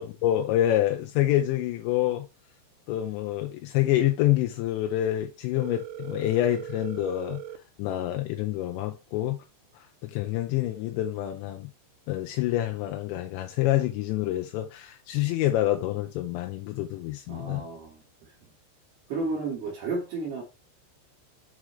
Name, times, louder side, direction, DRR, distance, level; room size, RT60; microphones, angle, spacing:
voice 1, 0.0-2.3 2.9-7.4 7.8-9.4 9.8-11.7 12.1-17.6, left 13 dB, 90° left, 2.5 m, -27 dB
Telephone, 5.6-7.6, right 11 dB, 80° right, 2.9 m, -39 dB
voice 2, 17.3-18.3 19.1-20.4, right 3 dB, 65° right, 3.1 m, -33 dB
7.6 x 4.8 x 3.1 m
omnidirectional pair, 5.9 m